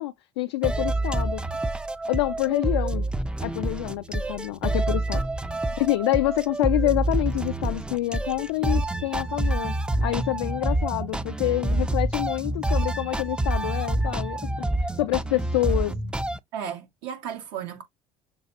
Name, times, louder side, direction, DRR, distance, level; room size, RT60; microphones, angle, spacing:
voice 1, 0.0-1.4 2.1-3.1 3.4-5.2 5.8-9.7 10.0-14.4 14.8-16.0, left 17 dB, 85° left, 0.4 m, -27 dB
sound 1, 0.6-16.4, right 1 dB, 5° right, 0.4 m, -27 dB
voice 2, 16.5-17.8, right 8 dB, 75° right, 1.8 m, -35 dB
6.6 x 2.3 x 2.8 m
hypercardioid pair, 75°, 14 cm